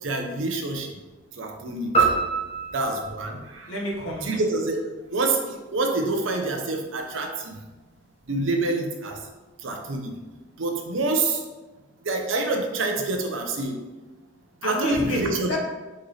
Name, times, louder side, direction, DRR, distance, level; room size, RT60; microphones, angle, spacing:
voice 1, 0.0-0.9 1.4-2.1 2.7-3.7 4.2-4.8 5.1-7.5 8.3-9.2 9.6-10.1 10.6-11.4 12.0-13.7 14.6-15.6, right 2 dB, 70° right, 3 dB, 0.7 m, -27 dB
sound 1, 1.9-4.4, right 5 dB, 30° left, 1.1 m, -26 dB
voice 2, 3.7-4.3 14.6-15.6, equal, 75° left, -1 dB, 1.0 m, -29 dB
4.2 x 3.2 x 3.9 m, 1.2 s
head